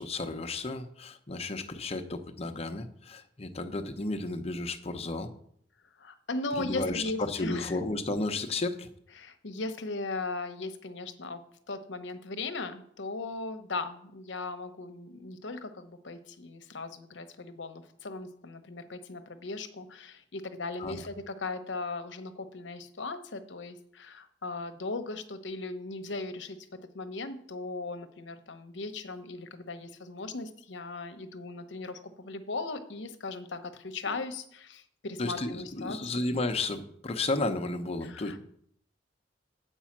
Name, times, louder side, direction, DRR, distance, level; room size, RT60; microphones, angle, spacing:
voice 1, 0.0-5.3 6.6-8.9 20.8-21.0 35.2-38.4, left 2 dB, 35° left, 6 dB, 0.8 m, -33 dB
voice 2, 6.0-7.8 9.2-11.4 11.7-26.6 26.9-36.1 38.0-38.4, left 3 dB, 70° left, 9 dB, 0.9 m, -38 dB
8.2 x 5.5 x 7.3 m, 0.67 s
head